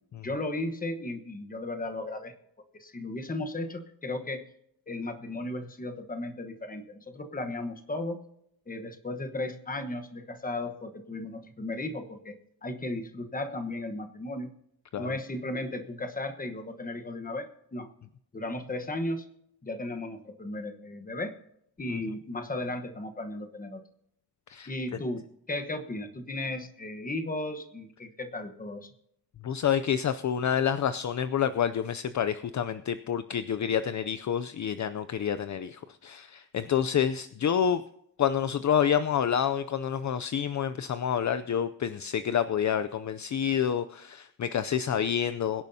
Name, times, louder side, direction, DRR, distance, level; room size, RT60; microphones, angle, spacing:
voice 1, 0.2-2.3 2.7-4.5 4.9-8.2 8.7-12.4 12.6-14.5 15.0-17.9 18.3-19.2 19.6-21.3 21.8-23.8 24.7-28.9, left 2 dB, 25° left, 7 dB, 1.1 m, -35 dB
voice 2, 29.4-37.8 38.2-45.6, left 8 dB, 50° left, 12 dB, 0.5 m, -28 dB
23.0 x 10.5 x 2.7 m, 0.74 s
wide cardioid pair, 180°, 37 cm